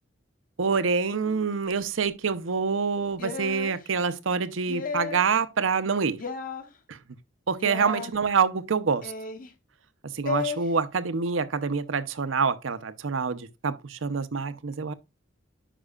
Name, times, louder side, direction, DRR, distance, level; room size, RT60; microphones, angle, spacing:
voice 1, 0.6-6.2 6.9-7.0 7.5-9.1 10.0-14.9, right 5 dB, 80° right, 0.7 m, -26 dB
sound 1, 3.2-3.8 4.7-5.3 6.2-6.6 7.6-8.1 9.0-9.5 10.3-10.6, left 5 dB, 45° left, 0.9 m, -33 dB
10.0 x 5.4 x 2.4 m
head